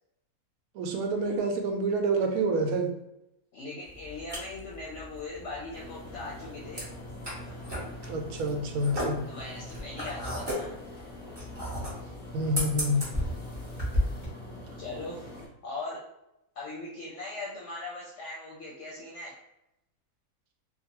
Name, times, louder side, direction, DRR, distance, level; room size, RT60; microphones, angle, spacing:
voice 1, 0.7-2.9 8.1-9.2 12.3-13.0, right 2 dB, 85° right, 3 dB, 1.0 m, -28 dB
voice 2, 3.5-6.9 9.3-10.8 14.8-15.3 15.6-16.1 16.6-19.4, left 2 dB, 65° left, -4 dB, 0.8 m, -40 dB
sound 1, 3.9-14.3, equal, 20° right, 0.8 m, -35 dB
sound 2, 5.7-15.5, left 1 dB, 25° left, 0.8 m, -43 dB
2.6 x 2.3 x 2.8 m, 0.85 s
omnidirectional pair, 1.5 m